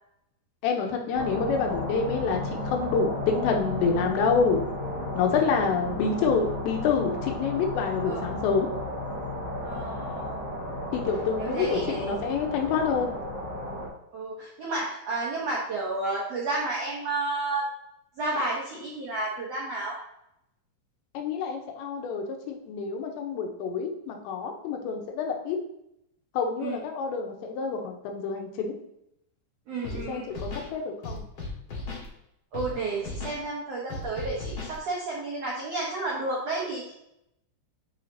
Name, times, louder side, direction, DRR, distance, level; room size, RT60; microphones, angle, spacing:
voice 1, 0.6-4.6 5.1-8.7 10.9-13.1 21.1-25.6 26.3-28.7 29.8-31.2, left 5 dB, 85° left, 3 dB, 3.1 m, -27 dB
sound 1, 1.1-13.9, left 1 dB, 10° left, 1.9 m, -33 dB
voice 2, 9.6-10.6 11.4-12.3 14.1-17.6 18.2-20.0 26.6-26.8 29.7-30.3 32.5-36.9, right 2 dB, 90° right, -4 dB, 1.4 m, -31 dB
Scratching (performance technique), 29.8-30.0 30.3-30.7 31.0-32.1 32.5-32.7 33.0-33.4 33.9-34.8, left 2 dB, 45° left, 1.7 m, -36 dB
9.6 x 5.0 x 2.8 m, 0.81 s
omnidirectional pair, 5.0 m